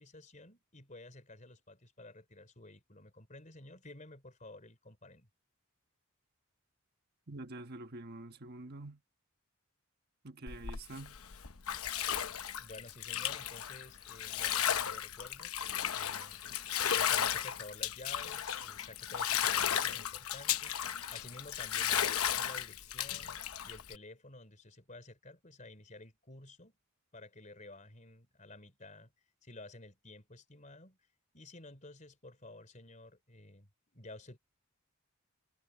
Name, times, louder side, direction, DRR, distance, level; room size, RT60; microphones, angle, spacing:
voice 1, 0.0-5.3 12.6-15.5 15.9-16.4 16.9-20.7 21.1-26.7 27.1-29.1 29.4-31.0 31.3-34.4, left 2 dB, 35° left, 4.2 m, -52 dB
voice 2, 7.3-9.0 10.2-11.2, right 2 dB, 50° right, 1.3 m, -46 dB
Bathtub (filling or washing), 10.5-24.0, left 9 dB, 90° left, 1.0 m, -34 dB
head